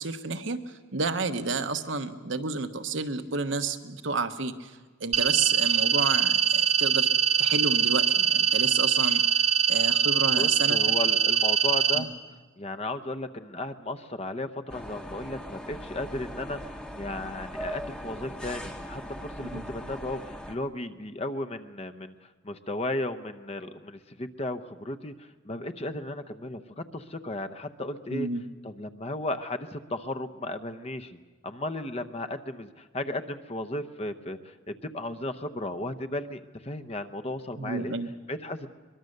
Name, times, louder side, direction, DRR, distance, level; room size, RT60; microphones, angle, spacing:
voice 1, 0.0-7.1 7.4-11.0 11.9-12.1 19.4-19.6 28.1-28.5 37.6-38.1, right 4 dB, 65° right, 7 dB, 1.1 m, -31 dB
sound 1, 5.1-12.0, right 8 dB, 35° right, 0.8 m, -23 dB
voice 2, 10.4-12.1 12.6-16.6 17.0-28.3 28.6-31.2 31.4-37.9 38.3-38.7, left 2 dB, 30° left, 9 dB, 0.8 m, -35 dB
sound 2, 14.7-20.6, equal, 5° left, 1.0 m, -39 dB
22.5 x 22.0 x 6.6 m, 1.3 s
head